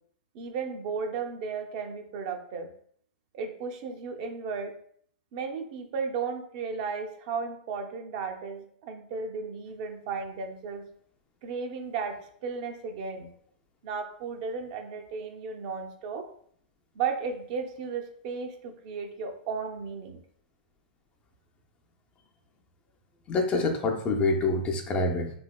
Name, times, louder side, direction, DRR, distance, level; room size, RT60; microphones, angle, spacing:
voice 1, 0.3-2.7 3.3-4.8 5.3-10.9 11.4-13.3 13.8-16.3 16.9-20.2, right 5 dB, 50° right, 5 dB, 0.5 m, -34 dB
voice 2, 23.3-25.3, left 3 dB, 25° left, 3 dB, 0.4 m, -26 dB
3.2 x 2.8 x 2.3 m, 0.62 s
hypercardioid pair, 130°, 5 cm